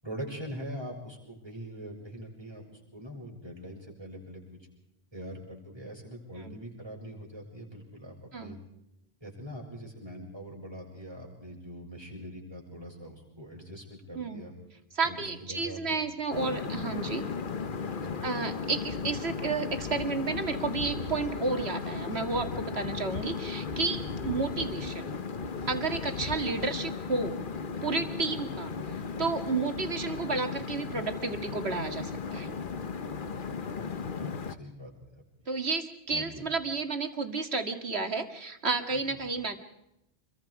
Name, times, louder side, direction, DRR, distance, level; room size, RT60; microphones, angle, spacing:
voice 1, 0.0-4.4 5.1-8.6 9.2-14.5 15.0-16.0 18.0-18.4 33.2-33.5 33.8-33.9 34.2-35.2 36.1-36.5 39.1-39.2, equal, 25° right, -1 dB, 7.3 m, -43 dB
voice 2, 14.1-14.5 14.9-17.2 18.2-25.2 25.7-27.4 27.8-28.7 29.2-32.5 35.5-39.6, right 4 dB, 90° right, 6 dB, 2.4 m, -31 dB
sound 1, 16.3-34.6, left 5 dB, 55° left, 1.2 m, -36 dB
27.5 x 23.0 x 4.9 m, 0.86 s
omnidirectional pair, 1.1 m